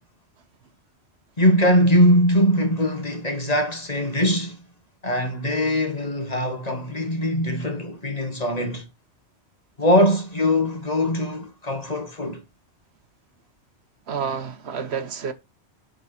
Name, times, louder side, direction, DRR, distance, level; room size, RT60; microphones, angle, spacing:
voice 1, 1.4-4.6 5.0-8.9 9.8-12.4, equal, 35° left, 1.4 m, -21 dB
voice 2, 14.1-15.3, right 6 dB, 70° right, 1.2 m, -29 dB
6.9 x 5.1 x 4.3 m
omnidirectional pair, 1.1 m